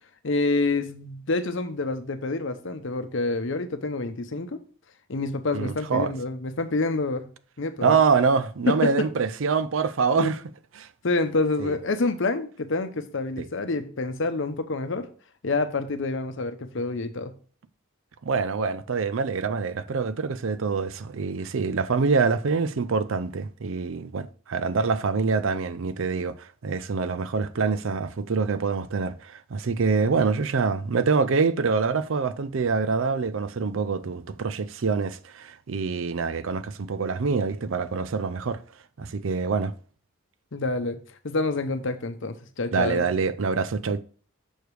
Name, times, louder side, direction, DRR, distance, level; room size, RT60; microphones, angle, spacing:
voice 1, 0.2-4.6 5.1-7.3 7.6-8.0 8.7-9.1 10.1-10.3 11.0-15.1 15.4-17.3 40.5-41.0 41.2-43.0, left 3 dB, 60° left, 0.8 m, -27 dB
voice 2, 5.5-6.1 7.8-10.4 10.8-10.9 11.6-11.8 13.4-13.5 18.2-38.6 39.0-39.7 42.7-44.0, right 5 dB, 70° right, 0.5 m, -25 dB
6.4 x 5.0 x 4.7 m
head